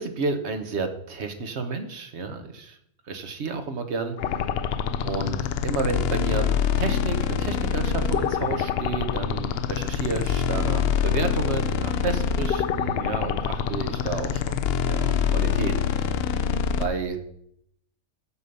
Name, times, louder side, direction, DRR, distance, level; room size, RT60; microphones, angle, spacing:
voice 1, 0.0-2.8 3.1-4.5 5.0-5.4 5.6-6.5 6.8-15.1 15.3-16.2 16.8-17.2, right 4 dB, 55° right, 7 dB, 1.2 m, -31 dB
sound 1, 4.2-16.9, left 7 dB, 65° left, 0.6 m, -25 dB
6.8 x 6.8 x 5.3 m, 0.70 s
omnidirectional pair, 1.4 m